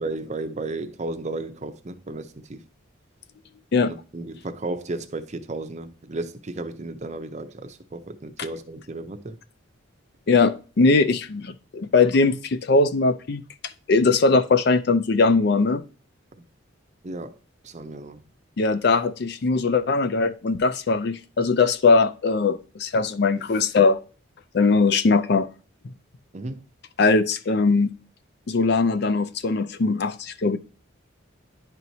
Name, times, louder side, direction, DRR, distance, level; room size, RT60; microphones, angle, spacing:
voice 1, 0.0-2.7 3.8-9.4 16.4-16.5 17.0-17.4 17.6-18.2 26.3-26.6, right 2 dB, 35° right, 0.6 m, -34 dB
voice 2, 10.3-13.4 13.9-15.8 18.6-24.0 24.5-25.5 27.0-27.9 28.5-30.6, left 4 dB, 55° left, 0.5 m, -20 dB
10.5 x 4.5 x 2.7 m
head